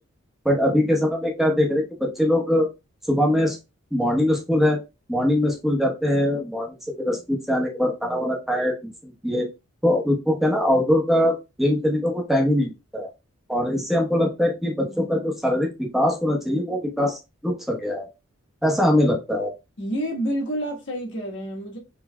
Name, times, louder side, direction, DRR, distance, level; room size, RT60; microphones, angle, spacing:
voice 1, 0.4-2.7 3.1-3.6 3.9-4.8 5.1-9.5 9.8-13.1 13.5-18.1 18.6-19.5, left 1 dB, ahead, 0.9 m, -22 dB
voice 2, 19.8-21.8, equal, 55° left, 1.3 m, -28 dB
4.6 x 3.1 x 2.2 m
head